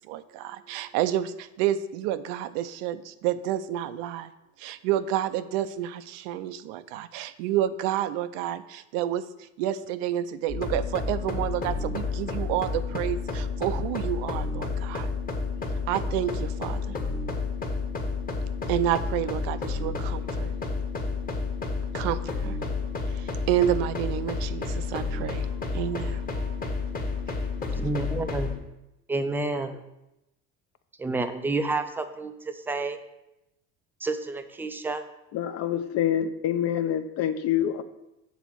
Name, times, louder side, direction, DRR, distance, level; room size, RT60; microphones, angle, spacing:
voice 1, 0.1-4.3 4.6-15.1 15.9-17.0 18.7-20.6 21.9-26.7 27.2-27.4, right 11 dB, 90° right, 13 dB, 0.5 m, -30 dB
sound 1, 10.5-28.6, left 4 dB, 25° left, 1.1 m, -30 dB
voice 2, 27.7-28.5 29.1-29.8 31.0-33.0 34.0-35.0, right 2 dB, 5° right, 8 dB, 0.3 m, -29 dB
voice 3, 35.3-37.8, left 10 dB, 50° left, 11 dB, 0.6 m, -26 dB
7.2 x 4.1 x 6.1 m, 0.90 s
cardioid pair, 135°, 33 cm